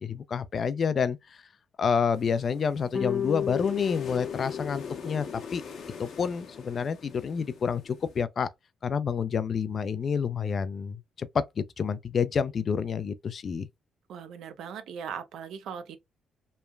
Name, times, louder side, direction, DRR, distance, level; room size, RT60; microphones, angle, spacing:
voice 1, 0.0-1.2 1.8-5.6 6.0-8.5 8.8-13.7, left 6 dB, 50° left, 0.3 m, -29 dB
sound 1, 2.1-8.2, left 5 dB, 65° left, 0.8 m, -43 dB
sound 2, 2.9-5.5, left 8 dB, 30° left, 0.8 m, -33 dB
voice 2, 14.1-16.0, right 7 dB, 75° right, 0.5 m, -39 dB
3.1 x 2.1 x 2.2 m
cardioid pair, 90°, 0 cm